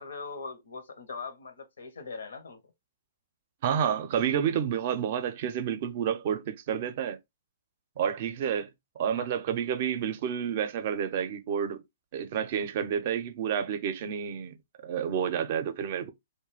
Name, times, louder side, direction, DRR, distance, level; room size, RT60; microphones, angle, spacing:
voice 1, 0.0-2.6 9.2-9.3, left 4 dB, 75° left, 0.6 m, -41 dB
voice 2, 3.6-7.2 8.0-8.7 9.0-11.8 12.1-14.6 14.8-16.1, right 8 dB, 50° right, 0.5 m, -29 dB
2.3 x 2.2 x 3.1 m
hypercardioid pair, 125°, 0 cm